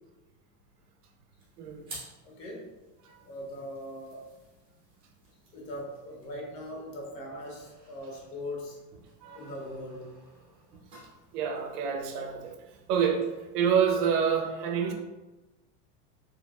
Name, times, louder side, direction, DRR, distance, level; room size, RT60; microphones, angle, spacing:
sound 1, 1.4-14.2, right 2 dB, 10° right, 0.6 m, -54 dB
voice 1, 2.2-2.7 3.2-4.3 5.5-8.8 9.3-10.1, left 1 dB, 80° left, -2 dB, 1.4 m, -40 dB
voice 2, 11.3-12.5 12.9-13.2 13.5-14.9, right 7 dB, 75° right, 4 dB, 0.8 m, -27 dB
4.0 x 3.2 x 2.4 m, 1.1 s
supercardioid pair, 180°, 48 cm